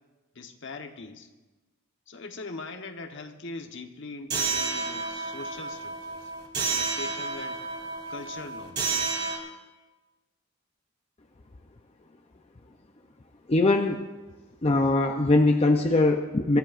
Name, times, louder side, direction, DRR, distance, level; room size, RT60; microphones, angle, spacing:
voice 1, 0.3-1.3 2.1-6.3 6.6-7.6 8.1-9.0, left 3 dB, 55° left, 5 dB, 1.1 m, -41 dB
sound 1, 4.3-9.4, right 4 dB, 45° right, 3.1 m, -31 dB
voice 2, 13.5-14.1 14.6-16.6, left 2 dB, 30° left, 4 dB, 0.6 m, -21 dB
23.5 x 14.5 x 2.5 m, 1.2 s
head